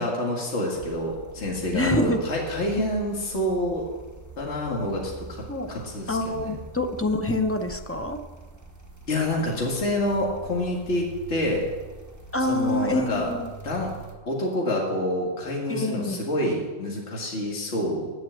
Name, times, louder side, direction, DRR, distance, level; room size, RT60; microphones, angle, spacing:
voice 1, 0.0-3.8 4.4-6.6 9.1-11.6 12.4-13.3 13.6-13.9 14.3-18.1, left 1 dB, 60° left, -2 dB, 2.0 m, -27 dB
sound 1, 0.7-14.1, right 4 dB, 15° right, 1.1 m, -44 dB
voice 2, 1.7-2.2 5.5-5.7 6.1-8.2 12.3-13.5 15.7-16.2, left 1 dB, 15° left, 5 dB, 0.5 m, -26 dB
9.3 x 7.7 x 7.7 m, 1.3 s
omnidirectional pair, 1.3 m